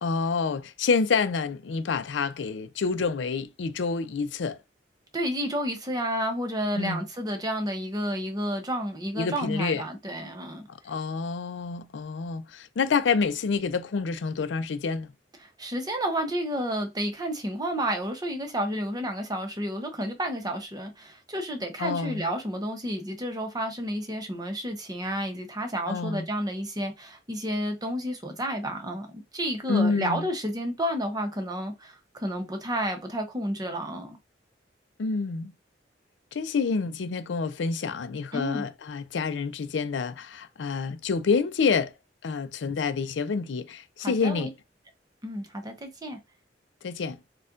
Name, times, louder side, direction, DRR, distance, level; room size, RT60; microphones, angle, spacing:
voice 1, 0.0-4.6 6.8-7.0 9.2-9.8 10.8-15.1 21.8-22.3 25.9-26.3 29.7-30.3 35.0-35.5 36.3-41.9 42.2-44.5 46.8-47.2, left 5 dB, 75° left, 0.4 m, -28 dB
voice 2, 5.1-10.6 15.4-29.1 29.3-34.2 38.3-38.6 44.0-44.5 45.2-46.2, equal, 20° right, 0.9 m, -31 dB
4.3 x 2.3 x 2.5 m
head